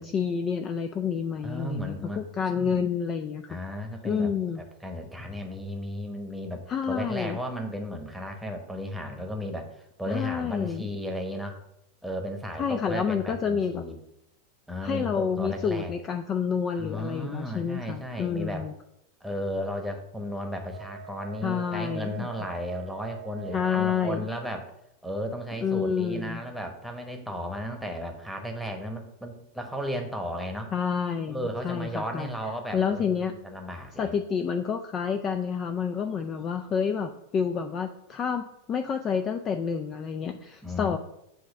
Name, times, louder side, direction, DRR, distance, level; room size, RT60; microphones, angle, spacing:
voice 1, 0.0-3.6 4.0-4.6 6.7-7.4 10.1-10.9 12.6-13.8 14.8-18.7 21.4-22.3 23.5-24.2 25.6-26.4 30.7-32.3 32.7-33.3 34.0-41.0, left 6 dB, 25° left, 7 dB, 0.4 m, -29 dB
voice 2, 1.4-2.2 2.5-2.8 3.5-11.6 12.0-14.0 14.7-15.9 16.8-18.7 19.2-24.7 25.0-30.7 31.3-34.1 40.6-40.9, equal, ahead, 3 dB, 1.2 m, -34 dB
Wind instrument woodwind instrument, 20.7-24.4, right 14 dB, 55° right, 0.7 m, -44 dB
7.9 x 3.0 x 6.2 m, 0.80 s
figure-of-eight pair, 90°, 0 cm